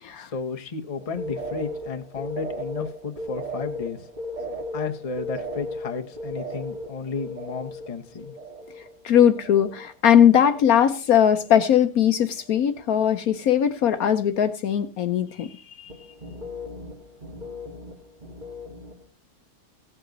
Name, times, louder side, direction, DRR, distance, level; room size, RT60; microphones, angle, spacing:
voice 1, 0.2-4.1 4.7-8.3, left 5 dB, 25° left, 6 dB, 0.8 m, -33 dB
sound 1, 1.0-9.9 10.2-10.9 11.2-11.9 12.2-12.6 15.9-19.1, left 1 dB, 25° right, 1.7 m, -37 dB
voice 2, 8.8-15.9, left 9 dB, 65° left, 10 dB, 1.1 m, -20 dB
16.5 x 7.7 x 3.9 m, 0.34 s
omnidirectional pair, 1.8 m